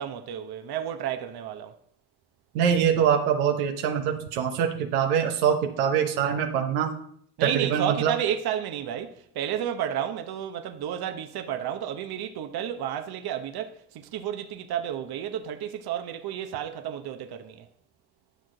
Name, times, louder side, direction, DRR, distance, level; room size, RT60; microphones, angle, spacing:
voice 1, 0.0-1.7 7.4-17.7, right 9 dB, 60° right, 1.0 m, -31 dB
voice 2, 2.5-6.9 7.4-8.2, right 8 dB, 85° right, 1.1 m, -24 dB
11.5 x 6.1 x 3.9 m
supercardioid pair, 65°, 43 cm